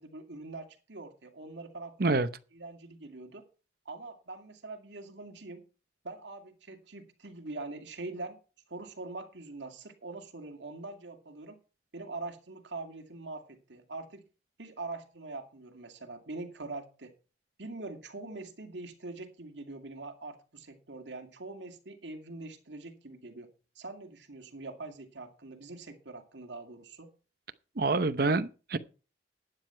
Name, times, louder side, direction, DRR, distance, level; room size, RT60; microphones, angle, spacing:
voice 1, 0.0-2.1 2.5-3.4 3.9-5.6 6.0-8.4 8.7-11.6 11.9-14.2 14.6-17.1 17.6-23.5 23.8-27.1, right 2 dB, 75° right, 2.4 m, -43 dB
voice 2, 27.8-28.8, right 3 dB, 55° right, 0.7 m, -27 dB
12.0 x 9.4 x 4.5 m
head